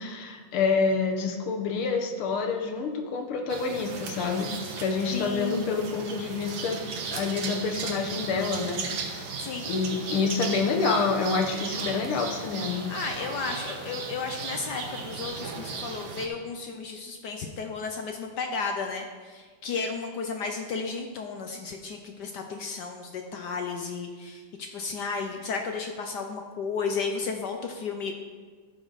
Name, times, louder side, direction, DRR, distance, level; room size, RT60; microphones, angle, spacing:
voice 1, 0.0-6.8 7.1-8.8 9.3-12.9, left 4 dB, 85° left, 3 dB, 1.9 m, -28 dB
sound 1, 3.5-16.3, right 5 dB, 70° right, 1.7 m, -36 dB
voice 2, 5.1-6.0 9.4-9.9 12.9-28.1, left 4 dB, 70° left, 4 dB, 1.1 m, -33 dB
14.0 x 5.2 x 4.0 m, 1.5 s
omnidirectional pair, 2.3 m